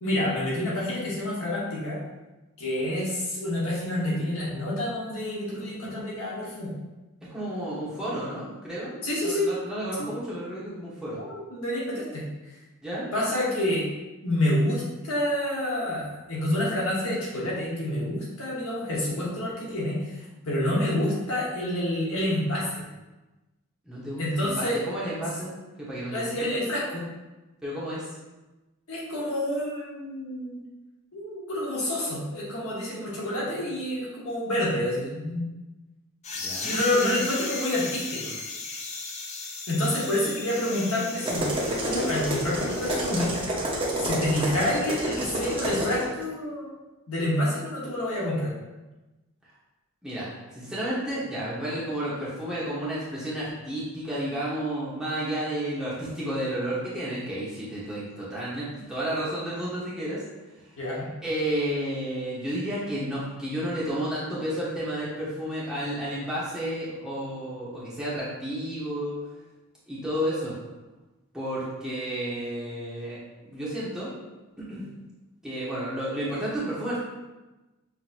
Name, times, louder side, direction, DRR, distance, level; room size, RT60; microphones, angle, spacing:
voice 1, 0.0-2.0 2.6-6.8 9.0-9.5 10.0-10.1 11.1-12.2 13.1-13.9 14.2-22.8 24.2-24.8 26.1-27.0 28.9-30.6 31.1-35.4 36.6-38.4 39.7-41.5 41.8-43.3 44.0-46.7 47.1-48.5 60.8-61.1, left 1 dB, 70° left, -6 dB, 1.1 m, -28 dB
voice 2, 7.3-11.2 12.8-13.1 23.9-26.5 27.6-28.1 36.3-36.8 50.0-60.2 61.2-69.2 69.9-70.5 71.3-74.1 74.6-74.8 75.4-77.0, right 1 dB, 5° right, -9 dB, 1.0 m, -32 dB
sound 1, 36.2-43.5, left 3 dB, 30° left, 0.5 m, -36 dB
sound 2, 41.2-46.1, right 1 dB, 25° right, 0.8 m, -29 dB
5.9 x 2.8 x 2.5 m, 1.1 s
head